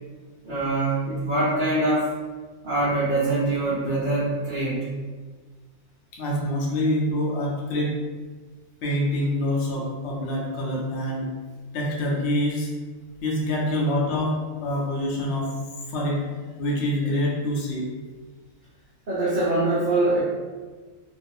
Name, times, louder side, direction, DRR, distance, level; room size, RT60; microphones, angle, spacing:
voice 1, 0.4-2.1 2.6-4.9 19.1-20.2, right 2 dB, 50° right, -10 dB, 0.6 m, -23 dB
voice 2, 6.1-8.0 8.8-11.3 11.7-12.7 13.2-15.5 15.9-16.2 16.6-17.8, left 1 dB, 65° left, -3 dB, 0.7 m, -26 dB
2.4 x 2.4 x 2.6 m, 1.4 s
omnidirectional pair, 1.6 m